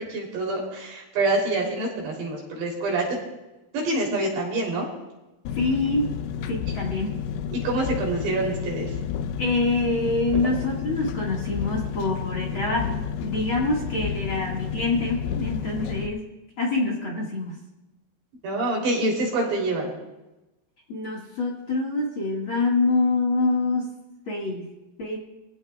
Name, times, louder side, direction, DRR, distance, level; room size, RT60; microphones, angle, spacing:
voice 1, 0.0-3.2 3.7-4.9 7.5-8.9 18.4-19.9, right 2 dB, 90° right, -1 dB, 5.7 m, -26 dB
Engine, 5.5-16.1, left 7 dB, 80° left, 2.7 m, -31 dB
voice 2, 5.6-6.1 6.5-7.2 9.4-16.3 16.6-17.5 20.9-23.9 24.3-24.7 25.0-25.2, left 3 dB, 40° left, -1 dB, 2.2 m, -25 dB
23.5 x 16.0 x 2.4 m, 1.0 s
omnidirectional pair, 4.8 m